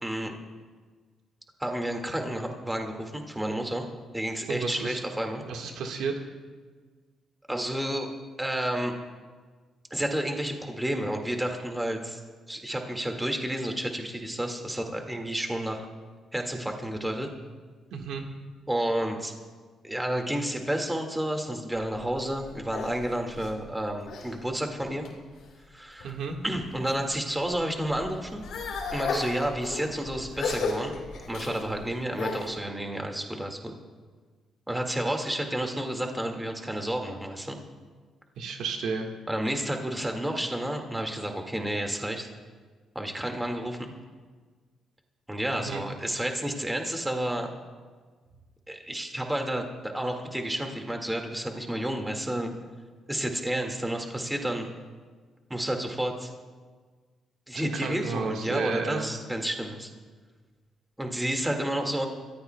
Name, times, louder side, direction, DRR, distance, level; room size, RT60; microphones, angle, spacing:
voice 1, 0.0-0.3 1.6-3.8 4.1-5.4 7.5-8.1 8.4-8.9 9.9-12.2 12.5-15.9 16.3-17.3 18.7-19.3 19.8-25.1 25.7-26.2 26.4-28.4 28.9-31.0 31.3-33.7 34.7-37.6 39.3-42.3 43.0-43.9 45.3-47.5 48.7-52.5 53.1-54.7 55.5-56.3 57.5-59.9 61.0-62.1, right 1 dB, 10° right, 3 dB, 1.8 m, -30 dB
voice 2, 4.5-5.0 5.4-6.1 17.9-18.2 26.0-26.4 38.4-39.1 45.5-45.8 57.5-59.1, right 5 dB, 80° right, 2 dB, 1.5 m, -32 dB
sound 1, 21.7-24.3 24.8-25.4 26.0-27.0 27.4-32.6, left 4 dB, 75° left, 3.2 m, -35 dB
26.5 x 14.5 x 2.2 m, 1.5 s
cardioid pair, 90°, 0 cm